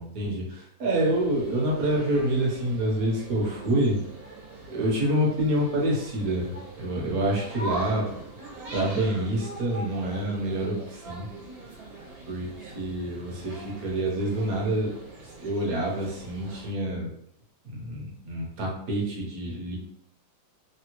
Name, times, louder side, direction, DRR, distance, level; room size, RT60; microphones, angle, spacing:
voice 1, 0.0-4.0 4.7-8.1 8.7-11.3 12.3-14.9 15.2-17.1 17.6-19.8, right 1 dB, 60° right, -2 dB, 1.2 m, -27 dB
sound 1, 0.9-16.7, right 2 dB, 90° right, 1.6 m, -42 dB
3.5 x 2.2 x 2.9 m, 0.70 s
omnidirectional pair, 2.1 m